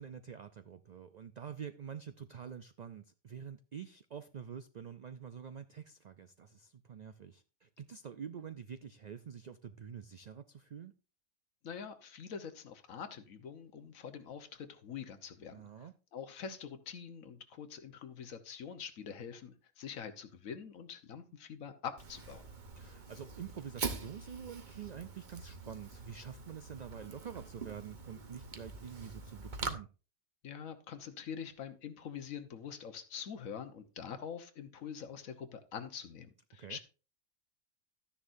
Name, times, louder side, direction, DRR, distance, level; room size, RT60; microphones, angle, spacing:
voice 1, 0.0-10.9 15.5-15.9 22.8-29.9 36.6-36.8, right 7 dB, 75° right, 0.3 m, -47 dB
voice 2, 11.6-22.4 30.4-36.8, left 7 dB, 85° left, 1.4 m, -45 dB
Fire, 22.0-29.7, right 4 dB, 40° right, 1.0 m, -44 dB
13.0 x 10.0 x 2.6 m
omnidirectional pair, 1.4 m